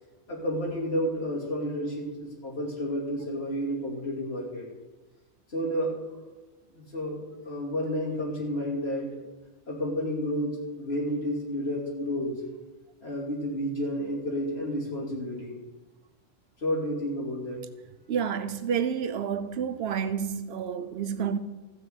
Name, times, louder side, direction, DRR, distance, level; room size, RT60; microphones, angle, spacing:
voice 1, 0.3-4.7 5.5-6.3 6.7-9.2 9.7-12.4 13.0-15.6 16.6-17.6, equal, 70° left, 3.1 m, -31 dB
voice 2, 18.1-21.4, right 7 dB, 75° right, 1.0 m, -29 dB
14.5 x 4.9 x 7.8 m
omnidirectional pair, 1.1 m